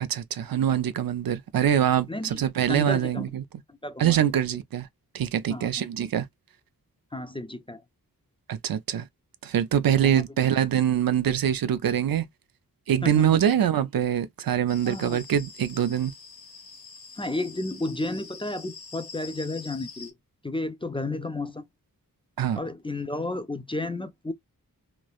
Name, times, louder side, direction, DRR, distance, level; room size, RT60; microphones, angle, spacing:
voice 1, 0.0-3.4 4.0-4.9 5.1-6.3 8.5-9.1 9.4-12.3 12.9-16.1 22.4-22.6, right 9 dB, 70° right, 0.5 m, -24 dB
voice 2, 2.1-2.4 2.7-3.2 3.8-4.2 5.5-5.7 7.1-7.8 9.9-10.2 13.0-13.4 14.8-15.2 17.2-20.1 20.4-21.6 22.6-24.3, left 2 dB, 15° left, 0.4 m, -32 dB
sound 1, 14.7-20.1, left 5 dB, 85° left, 1.1 m, -45 dB
3.1 x 2.1 x 2.3 m
wide cardioid pair, 65°, 36 cm